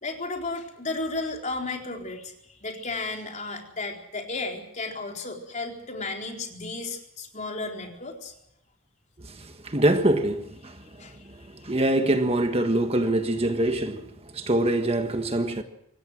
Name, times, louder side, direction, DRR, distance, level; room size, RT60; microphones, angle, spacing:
voice 1, 0.0-8.3 10.6-11.3, left 3 dB, 35° left, 4.2 m, -34 dB
voice 2, 9.4-10.8 11.6-14.1 14.3-15.6, right 1 dB, 30° right, 1.5 m, -24 dB
26.0 x 17.5 x 6.3 m
head